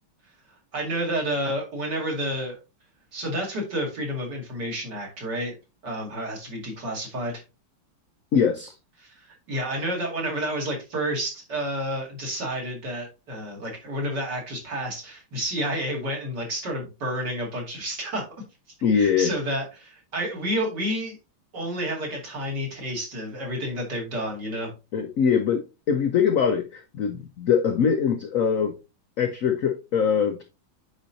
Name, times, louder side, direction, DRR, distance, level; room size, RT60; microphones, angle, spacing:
voice 1, 0.7-2.5 3.1-5.6 5.8-7.3 9.5-18.2 18.9-21.2 21.5-24.7, equal, 55° right, 2.8 m, -30 dB
voice 2, 8.3-8.7 18.8-19.3 24.9-28.7 29.2-30.4, left 7 dB, 75° left, 0.7 m, -23 dB
9.2 x 4.3 x 2.7 m
omnidirectional pair, 2.2 m